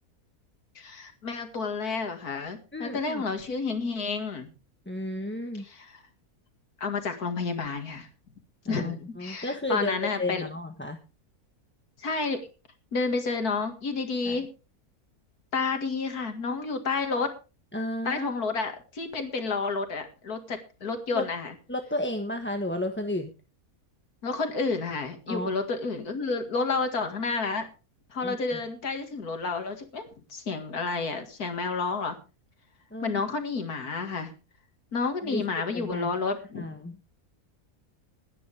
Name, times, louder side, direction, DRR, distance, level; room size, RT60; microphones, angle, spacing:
voice 1, 0.8-4.5 5.6-6.0 6.8-8.1 8.7-10.4 12.0-12.4 12.9-14.5 15.5-17.3 18.0-21.5 24.2-27.7 28.1-32.2 33.0-34.3 34.9-36.7, left 4 dB, 85° left, 6 dB, 2.5 m, -30 dB
voice 2, 2.7-3.2 4.9-5.6 8.6-9.9 10.2-11.0 14.2-14.4 17.7-18.4 21.1-21.2 21.7-23.3 25.3-25.5 28.2-28.6 32.9-33.2 35.2-36.1 36.5-37.0, left 1 dB, 10° left, 5 dB, 1.1 m, -33 dB
21.0 x 10.0 x 3.4 m, 0.32 s
omnidirectional pair, 1.6 m